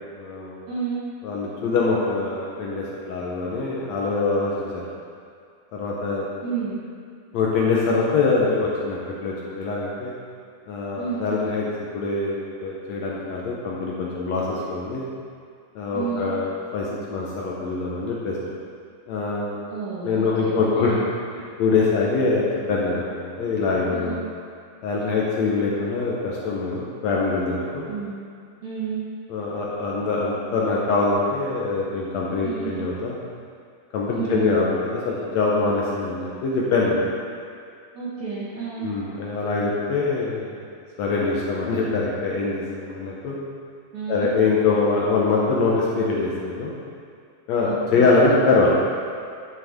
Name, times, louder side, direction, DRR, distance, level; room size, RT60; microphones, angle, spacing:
voice 1, 0.1-0.6 1.2-4.8 5.7-6.3 7.3-10.1 10.7-11.7 11.9-15.1 15.7-18.4 19.1-19.5 20.0-20.9 21.6-24.2 24.8-27.9 29.3-33.2 33.9-37.0 38.8-40.6 41.0-43.4 44.1-46.7 47.5-48.7, left 3 dB, 75° left, -4 dB, 1.6 m, -23 dB
voice 2, 0.7-1.0 6.4-6.8 11.0-11.2 15.9-16.3 19.7-21.0 23.9-24.2 27.9-28.3 28.6-29.0 32.4-32.7 34.1-34.5 37.9-38.9 43.9-44.3 47.6-48.1, right 6 dB, 60° right, -9 dB, 2.3 m, -31 dB
11.5 x 6.3 x 3.6 m, 2.3 s
omnidirectional pair, 4.2 m